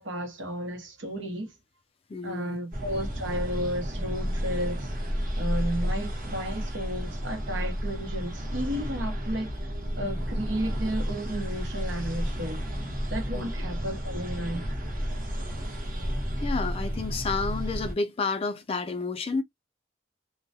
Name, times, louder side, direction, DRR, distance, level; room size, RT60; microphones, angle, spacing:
voice 1, 0.0-1.5 2.2-4.9 5.4-9.5 9.9-12.7 13.1-14.6, equal, 80° right, 0.9 m, -33 dB
voice 2, 2.1-2.6 13.3-13.5 16.4-19.4, left 4 dB, 30° left, 0.4 m, -30 dB
sound 1, 2.7-17.9, equal, 50° right, 0.9 m, -31 dB
2.2 x 2.1 x 2.7 m
head